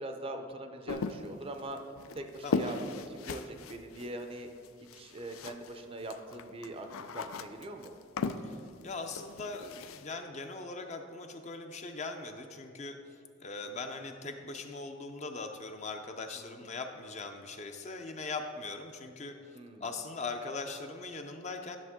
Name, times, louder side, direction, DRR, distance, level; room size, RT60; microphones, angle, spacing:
voice 1, 0.0-1.8 2.2-4.5 4.9-8.0 16.4-16.6 19.5-19.8, right 1 dB, 25° right, 5 dB, 0.5 m, -42 dB
sound 1, 0.9-5.8 6.1-10.1, left 4 dB, 85° left, 0.4 m, -38 dB
voice 2, 2.4-2.8 8.4-8.6 8.8-13.0 13.4-19.3 19.8-21.8, left 3 dB, 35° left, 5 dB, 0.5 m, -40 dB
10.5 x 6.9 x 3.6 m, 2.3 s
head